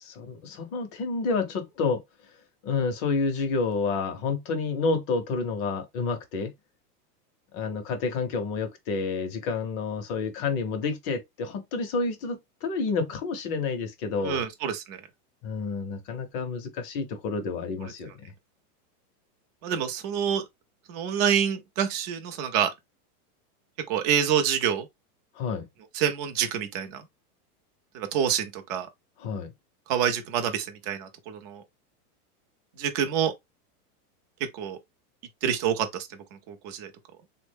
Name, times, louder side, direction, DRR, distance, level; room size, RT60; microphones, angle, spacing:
voice 1, 0.0-2.0 2.6-6.5 7.5-14.5 15.4-18.3 25.4-25.7 29.2-29.5, left 4 dB, 30° left, 0.6 m, -29 dB
voice 2, 14.2-15.0 19.6-20.4 20.9-22.7 23.9-24.9 25.9-27.0 27.9-28.9 29.9-31.6 32.8-33.3 34.5-34.8 35.4-36.1 36.5-36.9, right 8 dB, 30° right, 0.4 m, -27 dB
3.4 x 2.1 x 3.2 m
supercardioid pair, 145°, 47 cm